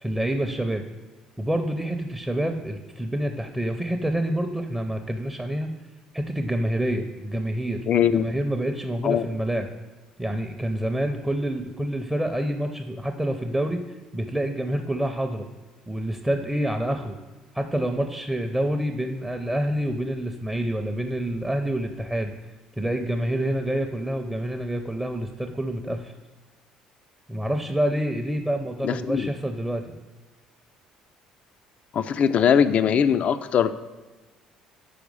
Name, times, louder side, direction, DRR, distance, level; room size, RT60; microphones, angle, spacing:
voice 1, 0.0-0.8 1.4-5.7 6.1-7.8 8.1-9.7 10.2-13.8 14.1-15.5 15.9-17.2 17.5-22.3 22.8-26.1 27.3-30.0, right 1 dB, 10° right, 5 dB, 0.5 m, -27 dB
voice 2, 7.9-8.2 9.0-9.3 28.8-29.3 31.9-33.7, left 8 dB, 50° left, 12 dB, 0.4 m, -21 dB
5.0 x 4.5 x 5.3 m, 1.2 s
hypercardioid pair, 60°, 3 cm